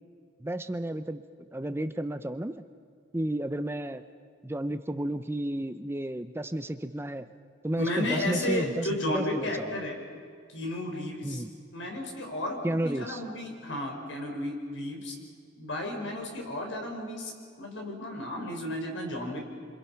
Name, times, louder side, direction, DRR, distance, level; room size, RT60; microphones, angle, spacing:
voice 1, 0.4-1.2 1.5-2.6 3.1-4.0 4.4-7.3 7.6-9.8 11.2-11.5 12.6-13.2, right 1 dB, 15° right, 10 dB, 0.6 m, -32 dB
voice 2, 7.8-10.0 10.5-11.4 11.7-15.1 15.6-17.3 17.6-19.4, left 1 dB, 80° left, 1 dB, 5.2 m, -33 dB
27.5 x 26.5 x 5.8 m, 2.1 s
head